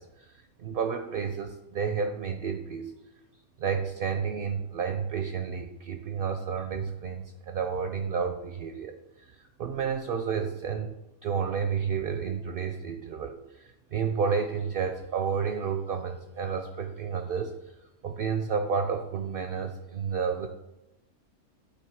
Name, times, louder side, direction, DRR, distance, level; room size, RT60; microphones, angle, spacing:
voice 1, 0.0-2.9 3.6-10.9 11.2-17.5 18.0-20.5, right 6 dB, 65° right, 7 dB, 0.6 m, -31 dB
8.5 x 2.9 x 4.6 m, 0.97 s
omnidirectional pair, 1.3 m